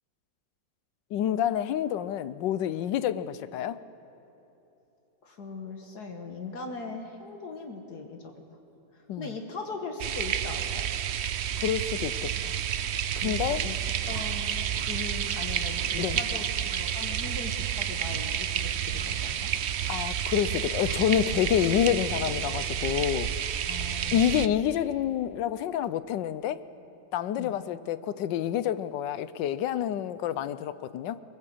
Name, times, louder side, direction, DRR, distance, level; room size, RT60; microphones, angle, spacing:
voice 1, 1.1-3.8 9.1-9.3 11.6-12.5 13.2-13.6 16.0-16.2 19.9-23.3 24.1-26.6 27.1-31.2, left 10 dB, 85° left, 15 dB, 1.4 m, -28 dB
voice 2, 5.2-8.3 8.9-10.9 12.4-12.6 13.2-14.6 14.9-19.5 23.7-24.5 27.4-27.5, left 4 dB, 65° left, 3 dB, 1.9 m, -40 dB
sound 1, 10.0-24.5, right 9 dB, 75° right, 0.6 m, -30 dB
sound 2, 13.4-13.6 14.1-14.3 14.7-14.9 15.2-15.4 15.7-15.9 16.2-16.4 16.7-16.8 17.2-17.4 18.1-18.2 18.9-19.1 19.8-20.0 20.8-21.0 21.5-21.7 22.2-22.4, right 2 dB, 25° right, 1.9 m, -45 dB
22.0 x 19.5 x 7.8 m, 3.0 s
omnidirectional pair, 1.9 m